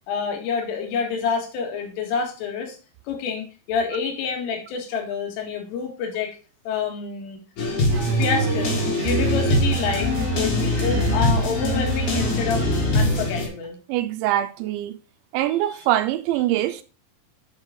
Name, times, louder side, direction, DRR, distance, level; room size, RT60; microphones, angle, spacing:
voice 1, 0.1-2.8 3.1-6.4 6.7-7.4 8.2-12.7 12.9-13.8 15.7-15.8, left 6 dB, 85° left, 4.2 m, -28 dB
sound 1, 7.6-13.5, left 3 dB, 55° left, 2.5 m, -23 dB
sound 2, 7.9-13.3, right 7 dB, 60° right, 3.6 m, -27 dB
voice 2, 13.9-15.0 15.3-16.8, right 13 dB, 85° right, 2.7 m, -23 dB
9.8 x 4.8 x 3.6 m
omnidirectional pair, 5.6 m